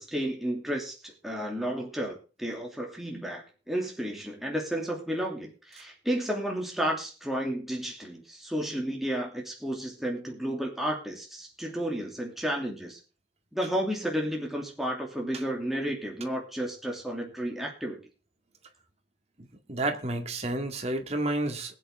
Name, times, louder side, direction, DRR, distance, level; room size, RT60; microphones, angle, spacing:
voice 1, 0.0-13.0 13.5-18.0, equal, ahead, -1 dB, 2.7 m, -32 dB
voice 2, 19.7-21.7, right 2 dB, 35° right, 4 dB, 2.2 m, -30 dB
21.0 x 8.4 x 3.7 m, 0.34 s
head